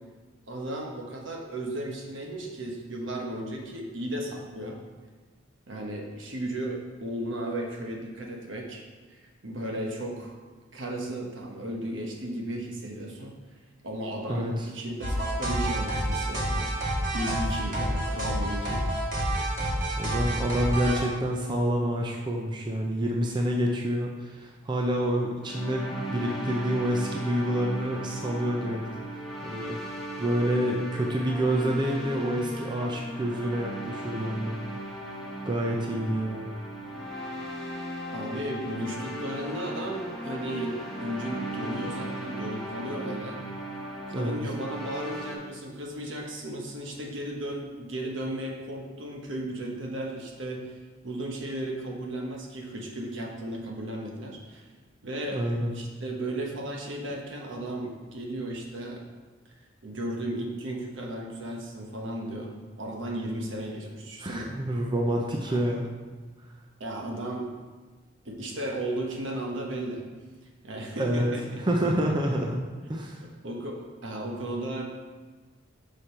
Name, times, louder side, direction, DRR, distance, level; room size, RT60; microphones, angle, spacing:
voice 1, 0.5-4.8 5.7-8.8 9.1-10.3 10.7-13.3 13.8-16.7 17.1-18.9 38.1-43.4 44.1-50.7 51.0-54.6 55.0-55.4 55.7-59.0 59.8-64.5 65.4-65.6 66.8-67.6 68.2-70.0 70.6-71.6 73.2-74.8, right 1 dB, 70° right, 1 dB, 1.1 m, -35 dB
voice 2, 14.3-14.7 20.0-28.8 29.5-29.8 30.2-34.6 35.5-36.5 44.1-44.4 55.3-55.7 64.2-65.9 71.0-71.3 71.6-72.6 72.9-73.3, right 1 dB, 25° right, 0 dB, 0.5 m, -28 dB
sound 1, 15.0-21.0, right 1 dB, 45° right, 1.7 m, -28 dB
sound 2, 25.4-45.3, equal, ahead, 1.1 m, -37 dB
6.3 x 5.2 x 4.3 m, 1.3 s
head